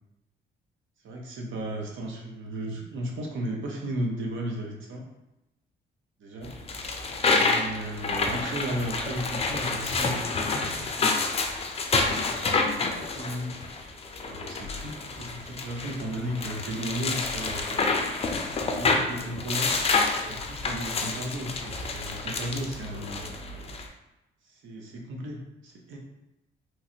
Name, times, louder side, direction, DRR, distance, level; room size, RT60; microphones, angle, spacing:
voice 1, 1.0-5.0 6.2-6.5 7.3-11.2 12.1-13.6 14.2-17.8 18.6-19.7 20.2-23.3 24.4-26.0, right 1 dB, 75° right, 0 dB, 0.7 m, -35 dB
sound 1, 6.4-23.9, left 3 dB, 30° left, 0.4 m, -28 dB
3.1 x 2.5 x 2.7 m, 0.95 s
cardioid pair, 90°, 20 cm